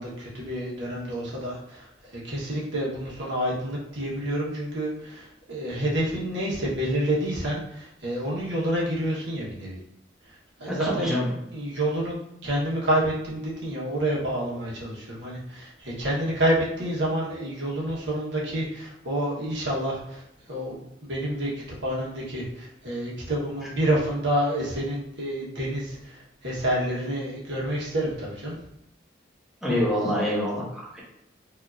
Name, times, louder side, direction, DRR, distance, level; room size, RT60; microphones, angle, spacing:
voice 1, 0.0-1.9 2.1-9.8 10.6-11.2 11.5-12.1 12.4-20.2 20.5-21.5 21.8-28.6, right 1 dB, 80° right, -5 dB, 1.3 m, -28 dB
voice 2, 10.7-11.3 29.6-31.0, left 1 dB, 5° right, -7 dB, 1.1 m, -26 dB
4.8 x 2.8 x 2.6 m, 0.81 s
head